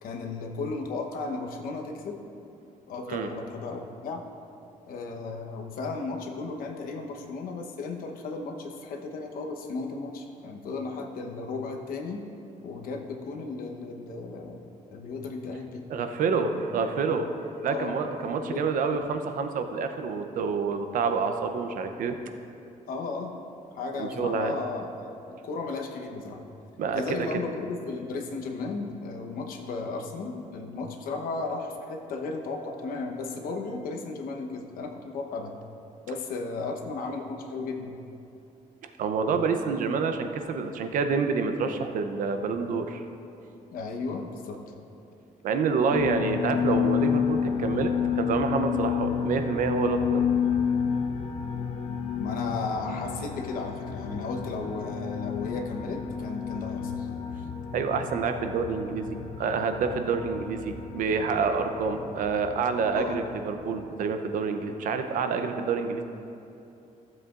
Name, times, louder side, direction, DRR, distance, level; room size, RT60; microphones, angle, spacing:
voice 1, 0.0-2.2 2.9-4.2 4.9-12.3 12.6-15.8 17.7-17.9 18.4-18.6 22.9-23.3 23.7-26.4 26.9-35.5 36.1-38.0 43.7-44.6 52.2-57.1 62.9-63.2, left 3 dB, 80° left, 2 dB, 1.0 m, -35 dB
voice 2, 15.9-17.3 17.6-22.2 24.0-24.5 26.8-27.0 39.0-43.0 45.4-50.5 57.7-66.0, right 5 dB, 70° right, 7 dB, 0.7 m, -28 dB
sound 1, 45.9-64.1, left 7 dB, 50° left, 0.6 m, -30 dB
15.0 x 7.6 x 2.5 m, 2.7 s
cardioid pair, 160°, 15 cm